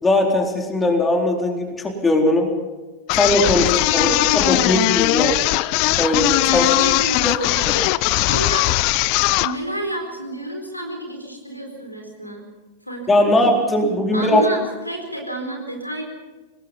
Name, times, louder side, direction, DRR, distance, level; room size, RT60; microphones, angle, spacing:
voice 1, 0.0-2.5 3.1-4.1 4.3-5.4 6.0-6.6 7.7-7.8 13.1-14.4, left 1 dB, 15° left, 2 dB, 4.1 m, -19 dB
sound 1, 3.1-9.6, left 19 dB, 45° left, 0.7 m, -19 dB
voice 2, 3.9-5.0 6.4-7.6 8.1-8.8 9.4-12.5 12.8-13.6 14.1-16.0, right 1 dB, 90° left, 3 dB, 4.5 m, -30 dB
25.5 x 19.5 x 5.7 m, 1.2 s
figure-of-eight pair, 90°, 0 cm